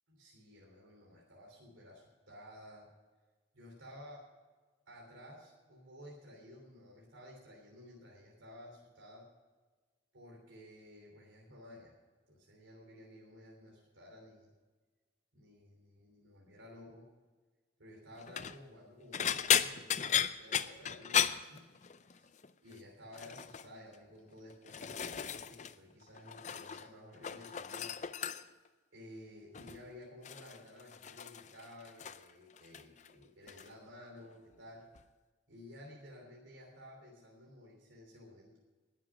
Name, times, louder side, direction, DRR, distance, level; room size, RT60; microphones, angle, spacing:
voice 1, 0.1-2.9 3.5-4.2 4.9-9.2 10.1-12.0 12.3-14.5 15.3-17.0 17.8-21.6 22.0-22.3 22.6-28.4 28.9-34.8 35.5-38.6, left 1 dB, 85° right, -2 dB, 3.3 m, -54 dB
sound 1, 18.2-18.6 19.1-22.2 22.4-22.8 23.1-23.7 24.3-25.8 26.0-26.9 27.1-28.7 29.5-29.8 30.2-32.3 32.6-33.1 33.5-33.7 35.0-35.1, left 8 dB, 35° left, 0.5 m, -35 dB
19.5 x 7.5 x 6.0 m, 1.3 s
head